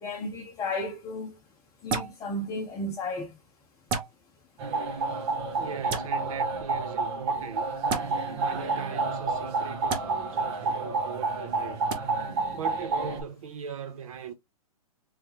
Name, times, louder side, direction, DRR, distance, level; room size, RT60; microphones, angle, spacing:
voice 1, 0.0-1.3 1.8-3.3, left 2 dB, 20° left, 0.9 m, -33 dB
sound 1, 1.9-2.2 3.9-4.1 5.9-6.1 7.9-8.0 9.9-10.0 11.9-12.0, right 4 dB, 25° right, 1.0 m, -29 dB
sound 2, 4.6-13.2, right 3 dB, 45° right, 1.3 m, -30 dB
voice 2, 5.6-7.8 8.3-11.9 12.5-14.3, right 7 dB, 60° right, 1.1 m, -39 dB
3.7 x 3.3 x 3.0 m
hypercardioid pair, 140°, 19 cm